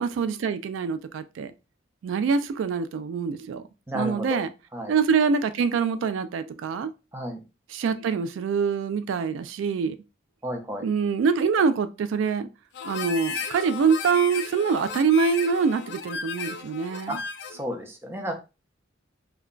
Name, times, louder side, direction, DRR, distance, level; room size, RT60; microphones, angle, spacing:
voice 1, 0.0-1.5 2.0-3.6 3.9-4.5 4.9-6.9 7.7-10.0 10.8-12.5 12.8-17.2, right 5 dB, 85° right, 0.3 m, -25 dB
voice 2, 3.9-4.4 4.7-4.9 7.1-7.4 10.4-10.9 17.1-17.2 17.5-18.3, equal, 10° right, 0.5 m, -32 dB
Harmonica, 12.7-17.7, left 6 dB, 60° left, 0.3 m, -35 dB
2.2 x 2.2 x 3.7 m
head